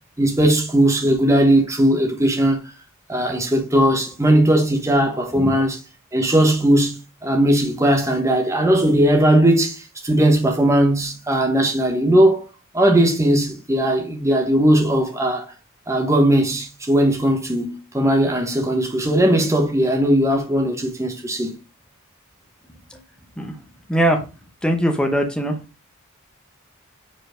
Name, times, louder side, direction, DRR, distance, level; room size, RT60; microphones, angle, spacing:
voice 1, 0.2-2.6 3.1-5.8 6.1-12.4 12.7-15.5 15.9-21.6, right 1 dB, 15° right, 1.2 m, -18 dB
voice 2, 23.9-24.3 24.6-25.6, equal, 5° left, 0.9 m, -21 dB
5.1 x 4.3 x 5.0 m
head